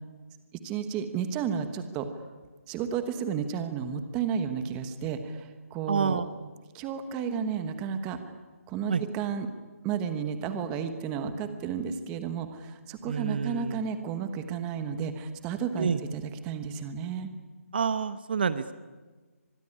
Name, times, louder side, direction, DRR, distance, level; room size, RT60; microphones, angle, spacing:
voice 1, 0.6-2.1 2.7-6.2 6.7-8.2 8.7-9.5 9.8-17.3, right 7 dB, 10° right, 9 dB, 1.2 m, -32 dB
voice 2, 5.9-6.3 8.9-9.0 13.0-13.9 15.8-16.0 17.7-18.7, right 6 dB, 40° right, 13 dB, 0.9 m, -28 dB
25.0 x 21.0 x 9.9 m, 1.3 s
hypercardioid pair, 170°, 8 cm